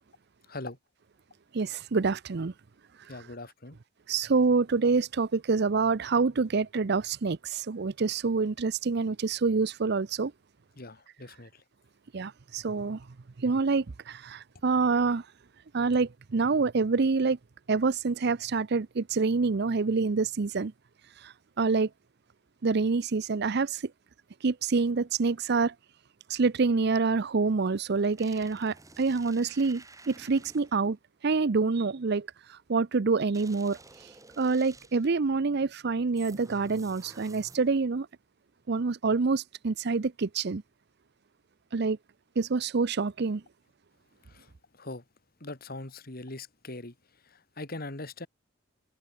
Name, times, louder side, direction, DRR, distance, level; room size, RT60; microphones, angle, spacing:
voice 1, 0.5-0.8 3.1-3.8 10.8-11.6 44.2-45.0 45.4-48.3, left 2 dB, 50° left, 2.4 m, -41 dB
voice 2, 1.5-2.5 4.1-10.3 12.1-13.0 13.4-15.2 15.7-17.4 17.7-20.7 21.6-21.9 22.6-23.8 24.4-25.7 26.3-31.0 31.2-32.3 32.7-33.8 34.4-38.1 38.7-40.6 41.7-42.0 42.4-43.4, right 4 dB, 55° right, 0.6 m, -26 dB
sound 1, 27.8-30.9 33.3-35.2 36.2-37.9, right 3 dB, 15° right, 5.9 m, -52 dB
head